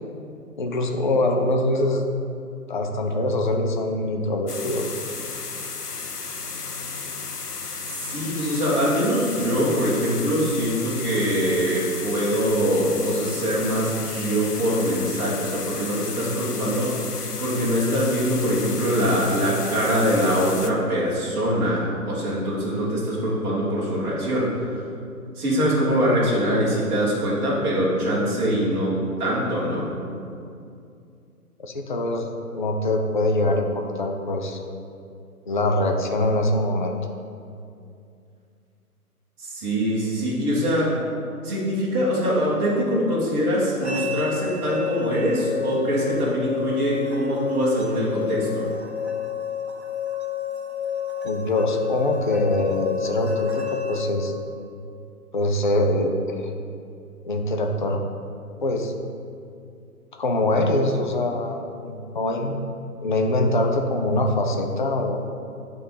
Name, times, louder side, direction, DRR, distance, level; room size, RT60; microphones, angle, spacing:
voice 1, 0.6-2.1 2.7-4.9 31.6-32.3 32.5-34.6 35.5-36.9 51.2-54.3 55.3-56.5 57.2-58.0 58.6-58.9 60.1-62.6 63.0-65.2, left 1 dB, 35° left, 3 dB, 0.4 m, -23 dB
sound 1, 4.5-20.7, left 4 dB, 85° left, 0.8 m, -34 dB
voice 2, 7.9-17.1 17.4-24.8 25.3-29.9 39.4-40.9 41.4-48.7, equal, 15° right, -9 dB, 1.2 m, -23 dB
sound 2, 43.8-54.0, left 7 dB, 45° right, 1.1 m, -29 dB
9.2 x 3.8 x 5.5 m, 2.5 s
figure-of-eight pair, 135°, 45 cm